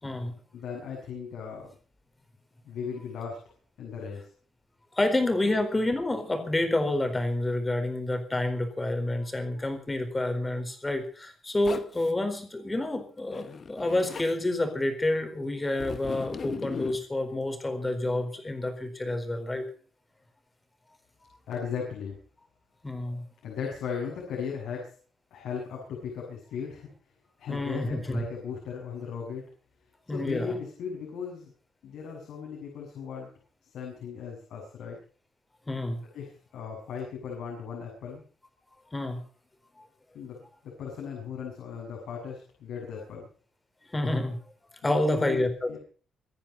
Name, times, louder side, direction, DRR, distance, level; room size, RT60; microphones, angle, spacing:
voice 1, 0.0-0.3 4.9-19.6 22.8-23.2 27.5-28.3 30.1-30.6 35.7-36.0 38.9-39.2 39.8-39.9 43.9-44.4 44.8-45.7, left 1 dB, 15° left, 7 dB, 4.3 m, -28 dB
voice 2, 0.5-1.7 2.7-3.4 3.8-4.3 5.5-5.6 21.5-22.2 23.4-24.9 25.3-26.9 27.4-29.4 30.1-31.5 31.8-33.3 33.6-35.0 36.1-38.2 40.1-40.4 40.8-43.3 44.8-45.8, left 6 dB, 80° left, -1 dB, 7.7 m, -37 dB
Zipper (clothing), 11.6-12.1 13.3-14.3 15.8-17.0, left 5 dB, 35° left, 1.1 m, -38 dB
25.0 x 10.0 x 5.4 m, 0.40 s
cardioid pair, 155°, 0 cm